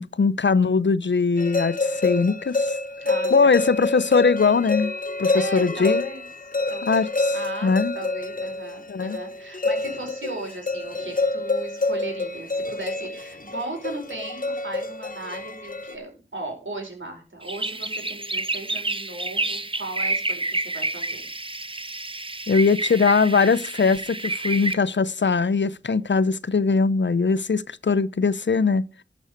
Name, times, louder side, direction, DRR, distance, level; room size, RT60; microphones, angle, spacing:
voice 1, 0.0-2.8 3.3-4.9 5.2-6.0 6.8-7.3 7.6-7.9 8.9-9.2 22.5-28.8, left 4 dB, 70° left, 0.7 m, -21 dB
sound 1, 1.4-15.9, left 2 dB, 45° left, 1.2 m, -27 dB
voice 2, 3.0-3.9 5.3-21.3, right 2 dB, 80° right, 5.0 m, -37 dB
sound 2, 17.4-24.7, right 2 dB, 25° right, 0.9 m, -29 dB
12.5 x 6.2 x 6.6 m
wide cardioid pair, 45°, 20 cm